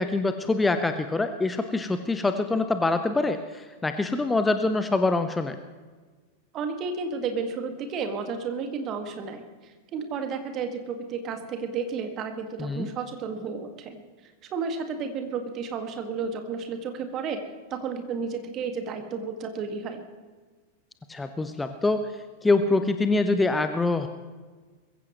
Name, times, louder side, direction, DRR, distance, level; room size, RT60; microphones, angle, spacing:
voice 1, 0.0-5.6 12.6-12.9 21.1-22.0 22.4-24.1, left 3 dB, 10° left, 9 dB, 0.8 m, -25 dB
voice 2, 6.5-14.0 14.5-17.4 17.7-20.0, right 5 dB, 35° right, 6 dB, 1.9 m, -32 dB
22.0 x 15.5 x 3.1 m, 1.4 s
figure-of-eight pair, 90°, 0 cm